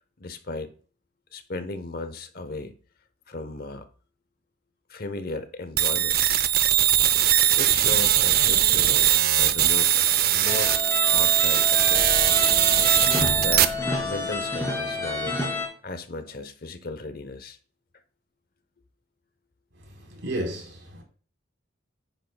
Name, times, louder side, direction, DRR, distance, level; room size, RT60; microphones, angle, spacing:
voice 1, 0.2-0.7 1.3-2.8 3.3-3.9 4.9-6.2 7.5-9.9 10.3-10.7 11.1-12.3 13.3-13.7 14.0-15.4 15.8-17.6, left 2 dB, 50° left, 0.9 m, -35 dB
sound 1, 5.8-13.6, right 11 dB, 50° right, 0.6 m, -20 dB
sound 2, 10.4-15.7, left 3 dB, 15° left, 2.9 m, -29 dB
voice 2, 19.8-21.0, right 1 dB, 75° right, 3.9 m, -33 dB
10.5 x 9.1 x 2.3 m
head